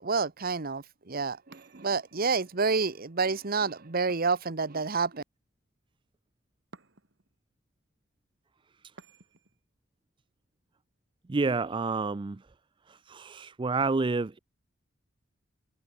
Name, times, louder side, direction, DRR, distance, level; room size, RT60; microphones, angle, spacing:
voice 1, 0.0-5.2, right 4 dB, 45° right, 1.1 m, -29 dB
sound 1, 1.5-2.5 4.1-5.1 6.7-7.4 9.0-9.6, right 3 dB, 60° right, 4.6 m, -55 dB
voice 2, 11.3-12.4 12.9-14.4, right 3 dB, 25° right, 0.4 m, -29 dB
head